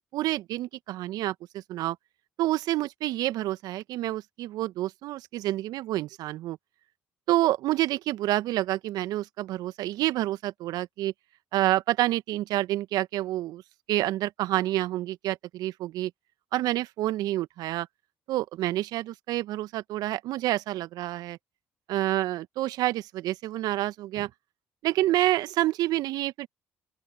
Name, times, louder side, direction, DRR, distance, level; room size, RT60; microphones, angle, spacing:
voice 1, 0.0-2.0 2.4-6.6 7.3-11.1 11.5-13.6 13.9-16.1 16.5-17.9 18.3-21.4 21.9-24.3 24.8-26.5, right 15 dB, 65° right, 1.6 m, -28 dB
open air
hypercardioid pair, 50°, 7 cm